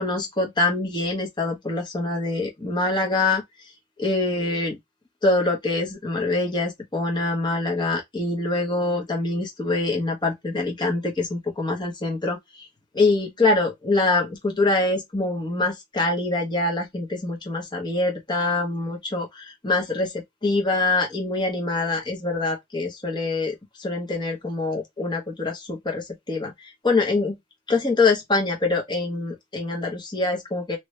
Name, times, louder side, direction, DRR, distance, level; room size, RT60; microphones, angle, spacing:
voice 1, 0.0-3.4 4.0-4.8 5.2-12.7 12.9-27.4 27.7-30.8, left 2 dB, 20° left, 1.2 m, -24 dB
2.9 x 2.6 x 3.1 m
head